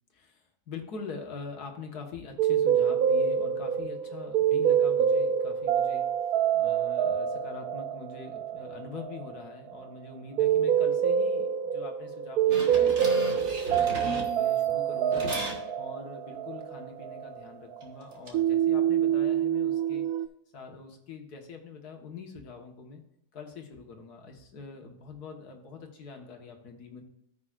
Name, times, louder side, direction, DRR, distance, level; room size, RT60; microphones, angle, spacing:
voice 1, 0.1-6.1 6.5-13.1 13.7-15.3 15.8-20.1 20.5-23.0 23.3-27.0, left 4 dB, 75° left, 3 dB, 2.0 m, -44 dB
sound 1, 2.4-18.0 18.3-20.3, right 8 dB, 75° right, 1.1 m, -26 dB
sound 2, 12.5-14.7 15.1-15.6 17.8-18.4, right 2 dB, 50° right, 1.8 m, -36 dB
14.5 x 5.9 x 2.5 m, 0.84 s
omnidirectional pair, 1.6 m